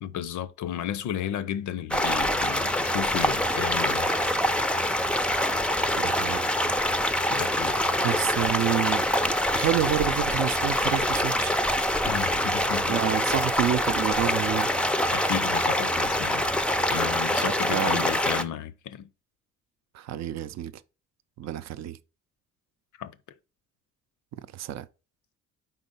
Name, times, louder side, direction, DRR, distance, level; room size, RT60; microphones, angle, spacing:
voice 1, 0.0-4.1 7.3-8.1 12.0-13.0 15.1-16.4 16.9-19.1 23.0-23.2, left 10 dB, 75° left, 0.6 m, -33 dB
sound 1, 1.9-18.4, left 1 dB, 5° left, 0.4 m, -25 dB
sound 2, 2.2-17.6, right 5 dB, 20° right, 0.9 m, -43 dB
voice 2, 5.9-6.5 8.0-9.1 9.5-11.5 12.9-14.7 17.4-18.1 19.9-20.7 21.4-22.0 24.4-24.9, right 11 dB, 60° right, 0.5 m, -29 dB
4.5 x 3.9 x 5.4 m
cardioid pair, 90°, 30 cm